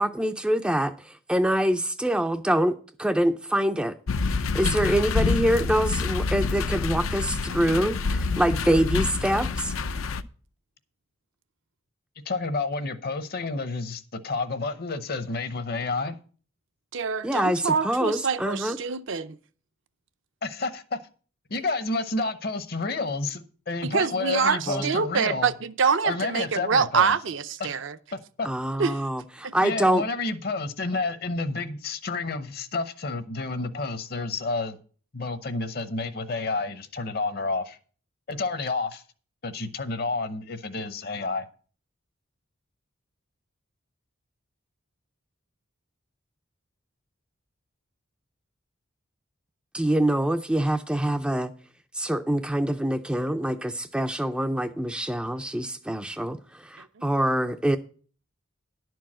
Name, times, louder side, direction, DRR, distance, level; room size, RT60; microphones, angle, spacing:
voice 1, 0.0-3.9 4.3-8.0 8.4-9.7 17.2-18.8 24.7-24.9 28.4-30.1 49.7-51.5 51.9-56.4 56.6-57.8, right 1 dB, 5° right, 0.4 m, -25 dB
sound 1, 4.1-10.2, left 4 dB, 80° left, 0.5 m, -27 dB
voice 2, 12.2-16.2 20.4-21.0 21.5-25.5 26.0-27.1 27.6-27.7 28.1-28.5 29.6-34.8 35.1-37.8 38.3-39.0 39.4-41.5, left 3 dB, 50° left, 0.8 m, -30 dB
voice 3, 16.9-19.4 23.8-28.0 28.8-29.0 29.4-29.5 57.0-57.1, right 6 dB, 65° right, 0.6 m, -25 dB
11.0 x 4.6 x 7.3 m
head